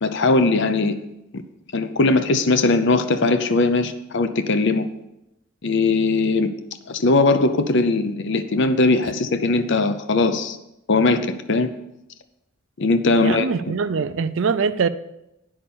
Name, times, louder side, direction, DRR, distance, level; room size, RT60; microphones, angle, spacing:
voice 1, 0.0-1.0 1.7-4.8 5.6-6.5 6.9-10.6 10.9-11.7 12.8-13.5, left 3 dB, 55° left, 0.6 m, -19 dB
voice 2, 13.1-14.9, right 5 dB, 65° right, 0.4 m, -23 dB
9.6 x 5.5 x 6.9 m
head